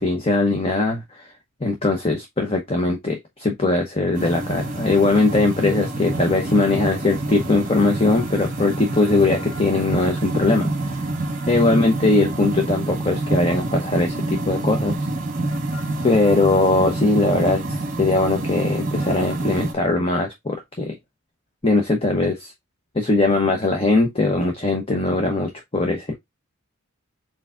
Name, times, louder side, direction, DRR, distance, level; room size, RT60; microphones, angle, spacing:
voice 1, 0.0-1.3 1.6-11.1 11.5-15.0 16.0-17.6 18.0-21.0 21.6-22.5 22.9-26.1, left 2 dB, 25° left, 0.8 m, -20 dB
sound 1, 4.1-19.7, right 2 dB, 35° right, 1.2 m, -27 dB
4.6 x 3.8 x 2.4 m
head